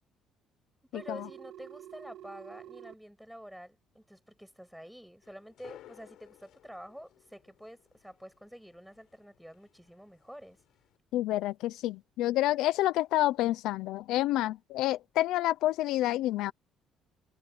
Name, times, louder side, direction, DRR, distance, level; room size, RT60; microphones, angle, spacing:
voice 1, 0.9-10.6, equal, ahead, 6.3 m, -48 dB
Telephone, 0.9-2.9, right 12 dB, 60° right, 3.9 m, -48 dB
sound 1, 5.2-11.0, left 13 dB, 60° left, 7.9 m, -58 dB
voice 2, 11.1-16.5, left 15 dB, 80° left, 0.6 m, -28 dB
cardioid pair, 175°, 0 cm